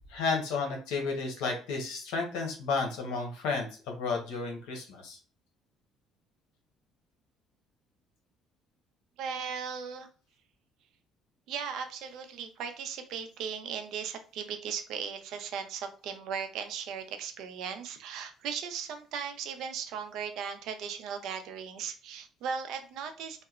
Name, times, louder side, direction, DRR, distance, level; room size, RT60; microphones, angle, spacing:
voice 1, 0.1-5.2, left 4 dB, 85° left, 1 dB, 0.8 m, -32 dB
voice 2, 9.2-10.1 11.5-23.4, right 7 dB, 70° right, 7 dB, 0.5 m, -37 dB
2.8 x 2.1 x 2.4 m, 0.37 s
cardioid pair, 115°, 0 cm